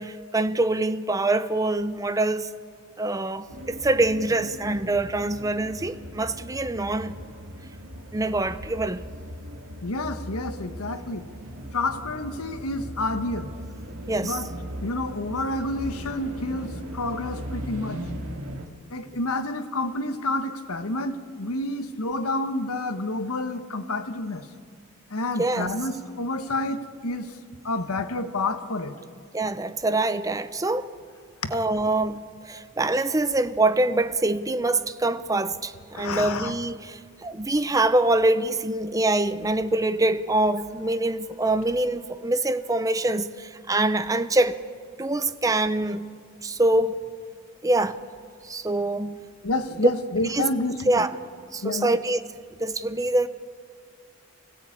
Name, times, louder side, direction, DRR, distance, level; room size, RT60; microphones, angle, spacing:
voice 1, 0.0-2.5 3.0-7.2 8.1-9.0 14.1-14.4 25.4-25.7 29.3-30.9 31.5-44.6 45.0-46.1 46.4-47.0 47.6-48.0 48.4-49.3 49.8-49.9 50.3-50.5 50.9-51.1 51.5-52.2 52.6-53.3, right 2 dB, 15° right, 0.6 m, -24 dB
sound 1, 3.5-18.7, equal, 75° right, 2.1 m, -38 dB
voice 2, 9.8-11.2 11.7-13.5 14.2-14.5 14.8-18.0 18.9-24.5 25.1-27.3 27.6-28.9 31.4-31.6 35.9-36.5 49.4-51.0 51.6-52.0, left 2 dB, 90° left, 1.3 m, -29 dB
25.0 x 16.0 x 8.6 m
head